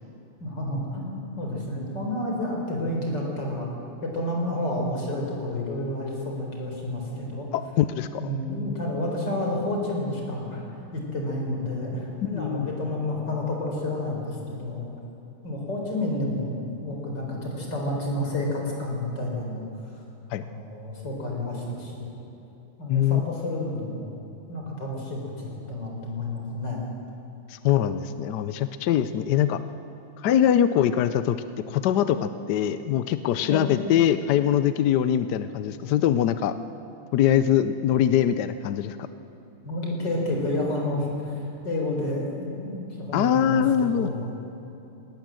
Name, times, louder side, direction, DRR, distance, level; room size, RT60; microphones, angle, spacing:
voice 1, 0.4-3.7 4.0-7.5 8.2-10.6 10.9-14.9 15.4-16.5 16.8-19.7 20.4-22.1 22.8-24.1 24.5-26.9 33.4-33.7 39.6-44.3, left 1 dB, 55° left, 0 dB, 4.8 m, -30 dB
voice 2, 7.5-8.3 12.2-12.7 20.3-20.4 22.9-23.2 27.5-29.6 30.2-31.4 31.7-36.5 37.1-39.1 43.1-44.1, left 10 dB, 70° left, 12 dB, 1.0 m, -23 dB
20.0 x 18.5 x 7.6 m, 3.0 s
omnidirectional pair, 2.3 m